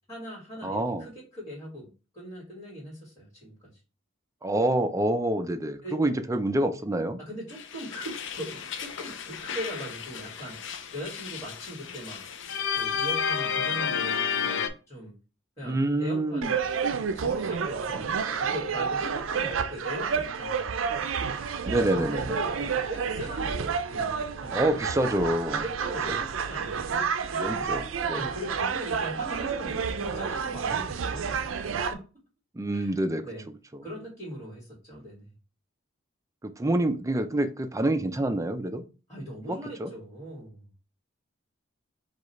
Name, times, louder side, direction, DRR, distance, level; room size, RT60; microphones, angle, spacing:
voice 1, 0.1-3.7 5.8-6.0 7.2-12.2 12.7-15.1 15.6-16.4 17.1-20.8 21.9-24.6 25.5-27.7 28.1-31.5 31.9-32.0 32.7-32.9 33.2-33.4 33.8-35.3 39.1-40.8, equal, 20° left, 1.7 m, -40 dB
voice 2, 0.6-1.1 4.4-7.2 15.6-16.5 21.7-22.3 24.5-25.6 27.4-28.3 32.5-33.2 36.4-38.8 39.5-39.9, right 1 dB, 15° right, 0.4 m, -27 dB
sound 1, 7.5-14.7, left 7 dB, 65° left, 0.5 m, -32 dB
sound 2, 16.4-31.9, right 6 dB, 80° right, 0.5 m, -30 dB
4.8 x 2.4 x 4.1 m
head